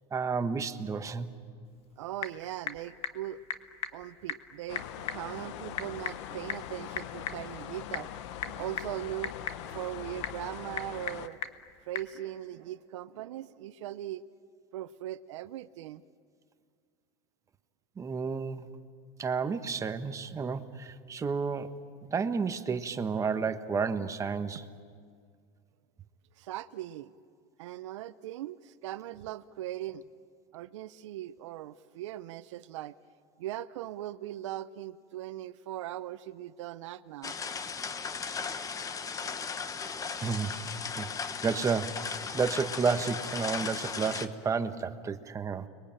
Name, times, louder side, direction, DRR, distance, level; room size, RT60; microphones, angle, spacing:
voice 1, 0.1-1.3 18.0-18.7 19.2-24.6 40.2-40.5 41.0-41.1 41.4-45.7, right 5 dB, 20° right, 9 dB, 1.3 m, -31 dB
Typing / Telephone, 1.6-12.2, left 8 dB, 40° left, 1.6 m, -41 dB
voice 2, 2.0-3.4 3.9-8.1 8.4-9.3 9.6-11.4 11.8-14.2 14.7-16.0 26.4-27.1 27.6-30.0 30.5-33.0 33.4-37.4, right 13 dB, 90° right, 14 dB, 0.7 m, -39 dB
sound 1, 4.7-11.3, left 11 dB, 75° left, 1.1 m, -42 dB
sound 2, 37.2-44.3, left 5 dB, 20° left, 1.2 m, -36 dB
30.0 x 22.5 x 9.0 m, 2.1 s
supercardioid pair, 125°, 15 cm